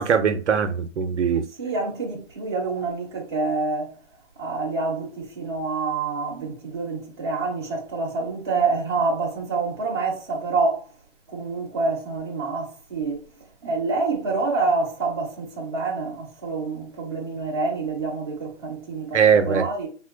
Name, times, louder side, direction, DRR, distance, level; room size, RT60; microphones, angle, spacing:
voice 1, 0.0-1.4 6.3-6.5 19.1-19.7, right 7 dB, 70° right, 0.5 m, -21 dB
voice 2, 1.6-3.9 4.4-10.8 11.3-13.2 13.6-19.2 19.5-19.9, right 3 dB, 20° right, 0.6 m, -27 dB
3.6 x 2.2 x 2.4 m
hypercardioid pair, 170°, 37 cm